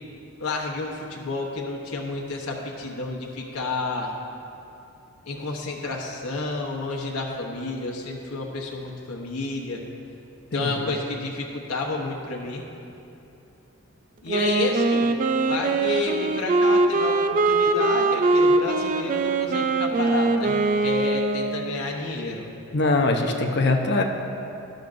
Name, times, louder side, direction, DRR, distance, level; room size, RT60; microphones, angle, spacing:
voice 1, 0.4-4.1 5.3-9.8 10.5-12.6 14.2-15.1 15.4-22.5, left 3 dB, 90° left, 0 dB, 1.1 m, -30 dB
voice 2, 10.5-11.0 22.7-24.0, left 2 dB, 50° left, 3 dB, 0.8 m, -22 dB
Wind instrument woodwind instrument, 14.3-21.9, right 3 dB, 35° right, 0.3 m, -22 dB
12.0 x 11.5 x 2.6 m, 2.8 s
head